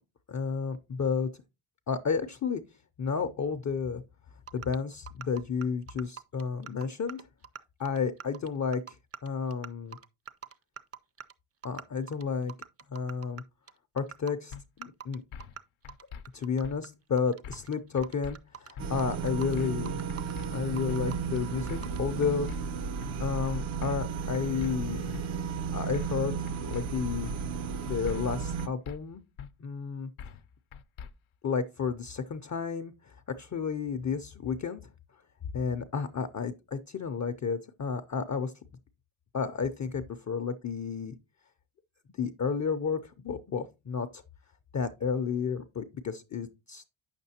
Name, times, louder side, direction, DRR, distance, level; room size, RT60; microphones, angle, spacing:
voice 1, 0.3-1.3 1.9-2.6 3.0-4.0 4.5-7.3 7.8-9.0 9.2-10.0 11.6-12.5 12.9-13.4 13.9-15.2 16.3-20.0 20.5-22.7 23.2-25.1 25.7-27.3 27.9-29.2 29.6-30.1 31.4-34.8 35.5-38.5 39.3-41.2 42.1-44.2 44.7-46.9, left 6 dB, 35° left, 0.5 m, -32 dB
sound 1, 4.5-4.8 5.1-7.6 7.9-11.3 11.6-11.8 12.1-12.2 12.5-13.4 13.7-13.8 14.0-15.6 15.9-16.9 17.1-18.7 19.0-19.6 19.9-20.5 20.8-21.4 21.7-22.0, right 8 dB, 30° right, 0.5 m, -44 dB
sound 2, 14.5-14.6 15.3-15.6 15.8-16.2 16.6-16.8 17.4-17.7 18.0-18.4 18.8-18.9 19.6-19.8 20.1-20.5 20.9-21.0 21.7-21.9 22.2-22.6 23.0-23.1 23.8-24.1 24.3-24.7 25.1-25.2 25.9-26.2 26.5-26.8 27.2-27.4 28.1-28.3 28.6-29.0 29.4-29.5 30.2-30.4 30.7-31.1, left 7 dB, 80° left, 0.7 m, -43 dB
sound 3, 18.8-28.7, right 6 dB, 70° right, 0.9 m, -34 dB
8.9 x 6.7 x 2.8 m
cardioid pair, 110°, 48 cm